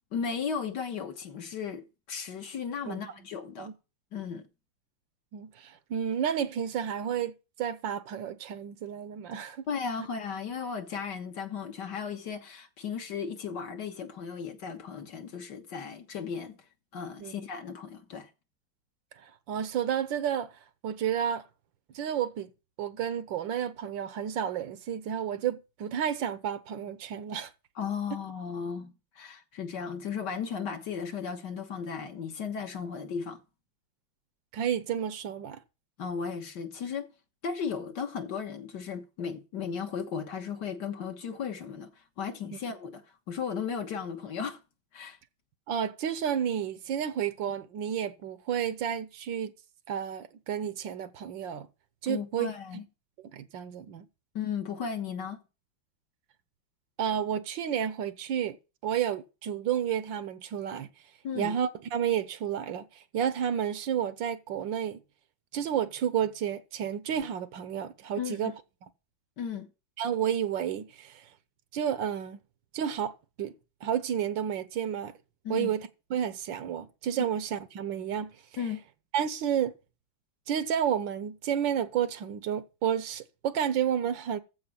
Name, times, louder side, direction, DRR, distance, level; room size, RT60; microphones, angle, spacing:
voice 1, 0.1-3.7 4.1-4.5 9.7-16.6 16.9-18.3 27.8-33.4 36.0-37.1 37.4-41.9 42.2-44.6 44.9-45.2 52.1-52.8 54.4-55.4 61.2-61.5 68.2-68.5 69.4-69.7 75.4-75.7 77.2-77.3 78.6-78.8, left 6 dB, 60° left, 1.9 m, -35 dB
voice 2, 5.3-7.3 7.6-9.6 17.2-17.3 19.2-20.5 20.8-21.4 21.9-22.5 22.8-27.5 34.5-35.6 45.7-49.5 49.9-51.7 52.0-52.5 53.3-54.0 57.0-58.6 58.8-60.9 61.3-65.0 65.5-68.5 70.0-71.2 71.7-72.4 72.7-73.1 73.4-73.5 73.8-75.1 75.5-78.3 79.1-79.7 80.5-84.4, right 9 dB, 70° right, 1.5 m, -31 dB
14.5 x 4.8 x 7.3 m
omnidirectional pair, 2.1 m